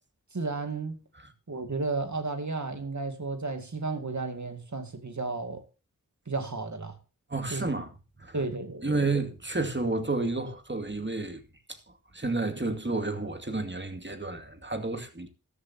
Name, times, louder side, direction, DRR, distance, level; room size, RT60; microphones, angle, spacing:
voice 1, 0.3-1.0 1.5-5.6 6.3-6.9 7.5-7.7 8.3-8.9, right 3 dB, 55° right, 2.2 m, -33 dB
voice 2, 7.3-7.9 8.2-8.4 8.8-11.4 11.7-11.8 12.1-15.3, right 3 dB, 30° right, 2.4 m, -31 dB
13.5 x 13.0 x 2.9 m
wide cardioid pair, 60°, 35 cm